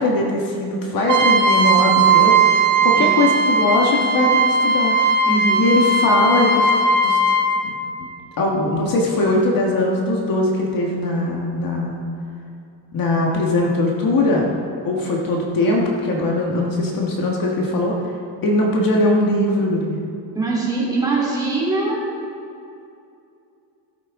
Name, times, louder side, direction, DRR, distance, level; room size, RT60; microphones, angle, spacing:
voice 1, 0.0-4.9 5.6-6.7 7.0-7.2 7.6-7.7 8.4-12.0 12.9-14.6 14.8-18.0 18.4-20.0, left 2 dB, 50° left, -1 dB, 1.5 m, -20 dB
Trumpet, 1.1-7.5, right 3 dB, 45° right, 1.4 m, -17 dB
voice 2, 3.0-3.3 5.3-5.7 20.3-22.0, right 3 dB, 10° right, -6 dB, 3.0 m, -22 dB
16.0 x 8.4 x 3.6 m, 2.6 s
cardioid pair, 145°, 44 cm